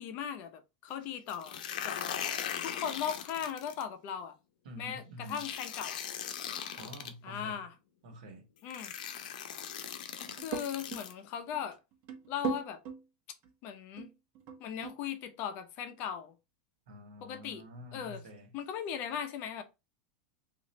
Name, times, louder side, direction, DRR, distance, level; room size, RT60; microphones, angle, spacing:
voice 1, 0.0-2.0 2.6-4.4 4.8-6.0 7.2-7.7 8.6-8.9 10.0-11.8 12.3-12.8 13.6-14.1 14.6-16.3 17.2-17.6 17.9-18.2 18.5-19.6, left 8 dB, 45° left, 0.6 m, -38 dB
sound 1, 1.3-3.8 5.3-7.1 8.1-8.2 8.7-11.1, left 9 dB, 80° left, 0.6 m, -39 dB
voice 2, 4.6-5.4 6.8-7.6 8.0-8.4 16.9-18.5, equal, 80° right, 1.1 m, -47 dB
sound 2, 10.3-11.0 11.5-11.6 11.9-13.0 13.4-13.5 14.0-15.0, right 6 dB, 40° right, 0.9 m, -38 dB
3.1 x 2.5 x 4.0 m
supercardioid pair, 155°, 4 cm